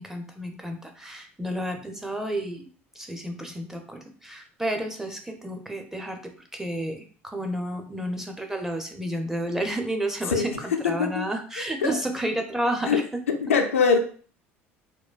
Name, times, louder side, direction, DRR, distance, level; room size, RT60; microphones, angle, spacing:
voice 1, 0.0-2.7 3.0-13.0, right 1 dB, 5° right, 0.6 m, -31 dB
voice 2, 10.3-11.3 11.8-12.0 12.8-13.0 13.3-14.0, left 5 dB, 80° left, 0.4 m, -23 dB
4.4 x 2.2 x 2.3 m
figure-of-eight pair, 60°, 7 cm